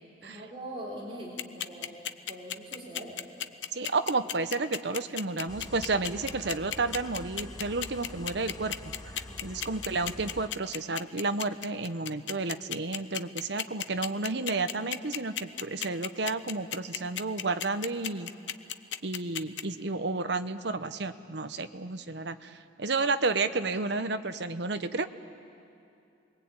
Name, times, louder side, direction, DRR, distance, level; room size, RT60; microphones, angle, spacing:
voice 1, 0.2-2.0 2.3-3.2 9.2-9.7, right 1 dB, 30° right, -4 dB, 4.0 m, -42 dB
sound 1, 1.4-19.6, left 10 dB, 75° left, 0.8 m, -34 dB
voice 2, 3.7-8.7 9.4-18.3 19.0-25.1, right 3 dB, 65° right, 10 dB, 1.0 m, -31 dB
sound 2, 5.5-10.5, left 2 dB, 20° left, 0.7 m, -46 dB
28.0 x 22.0 x 8.9 m, 2.6 s
head